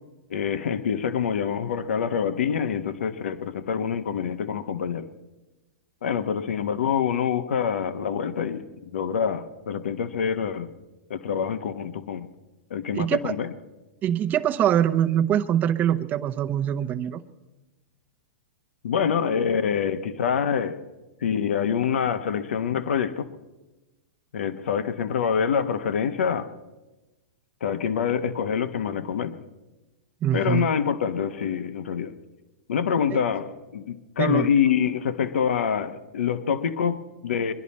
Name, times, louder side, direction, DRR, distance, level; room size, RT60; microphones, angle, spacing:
voice 1, 0.3-5.1 6.0-10.7 11.1-12.3 12.7-13.5 18.8-20.8 21.2-23.3 24.3-26.5 27.6-29.4 30.3-32.1 32.7-37.5, left 7 dB, 80° left, 10 dB, 1.0 m, -26 dB
voice 2, 12.9-13.3 14.0-17.2 30.2-30.7 33.1-33.2 34.2-34.5, right 10 dB, 25° right, 5 dB, 0.7 m, -23 dB
23.0 x 11.0 x 4.3 m, 1.1 s
hypercardioid pair, 130°, 7 cm